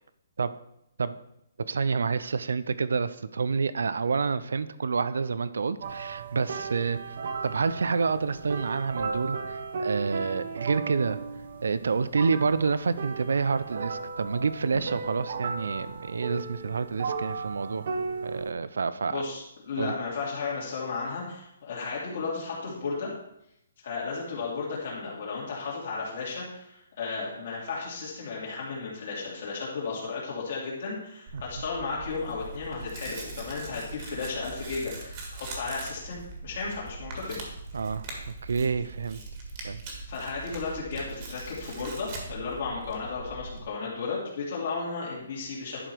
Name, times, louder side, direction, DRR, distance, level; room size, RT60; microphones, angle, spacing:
voice 1, 1.7-7.0 7.4-11.2 11.6-17.9 18.2-19.2 19.8-19.9 31.3-31.4 37.7-39.2 39.6-39.8, right 5 dB, 85° right, 15 dB, 0.5 m, -28 dB
sound 1, 5.8-18.5, right 4 dB, 50° right, 0.9 m, -36 dB
voice 2, 19.1-23.1 23.8-37.4 40.1-45.9, left 4 dB, 50° left, -6 dB, 2.7 m, -34 dB
Tearing, 31.3-43.6, right 2 dB, 25° right, 1.7 m, -41 dB
11.0 x 5.0 x 4.6 m, 0.80 s
hypercardioid pair, 170°, 0 cm